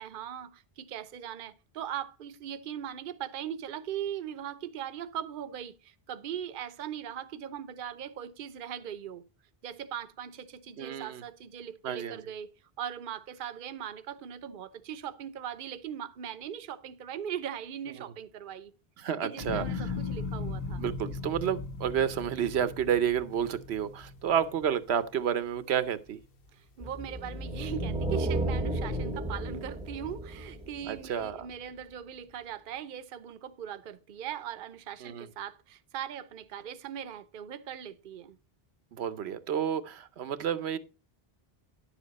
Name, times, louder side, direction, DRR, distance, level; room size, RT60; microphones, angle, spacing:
voice 1, 0.0-9.2 9.6-12.5 12.8-18.7 19.2-20.8 26.5-38.4, right 9 dB, 60° right, 0.8 m, -40 dB
voice 2, 10.8-11.2 11.8-12.2 19.0-19.9 20.8-26.2 30.9-31.5 35.0-35.3 38.9-40.8, right 8 dB, 90° right, 1.0 m, -30 dB
sound 1, 19.4-25.7 26.1-26.7, left 4 dB, 65° left, 1.3 m, -38 dB
sound 2, 26.8-31.2, right 1 dB, 5° right, 0.8 m, -33 dB
10.5 x 7.1 x 4.0 m
omnidirectional pair, 1.0 m